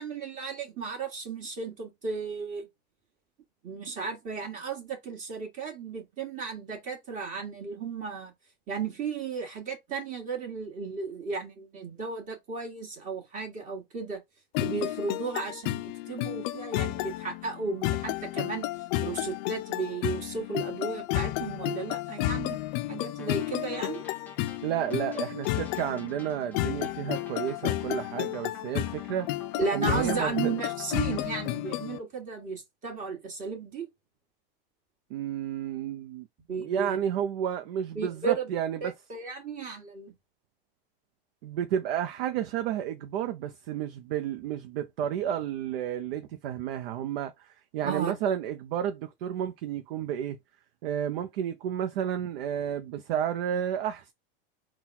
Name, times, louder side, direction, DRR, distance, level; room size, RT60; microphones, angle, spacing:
voice 1, 0.0-2.7 3.6-8.3 8.7-14.2 14.6-18.7 19.0-22.6 22.9-24.0 29.6-33.9 36.5-37.0 37.9-38.5 38.8-40.1 47.8-48.2, right 5 dB, 25° right, 1.8 m, -34 dB
sound 1, 14.5-32.0, left 16 dB, 50° left, 0.4 m, -32 dB
sound 2, 23.2-31.7, left 3 dB, 5° left, 0.7 m, -50 dB
voice 2, 24.6-29.3 29.7-30.5 35.1-36.3 36.6-38.9 41.4-50.4 50.8-54.1, right 9 dB, 75° right, 0.6 m, -31 dB
3.9 x 2.3 x 4.2 m
supercardioid pair, 140°, 29 cm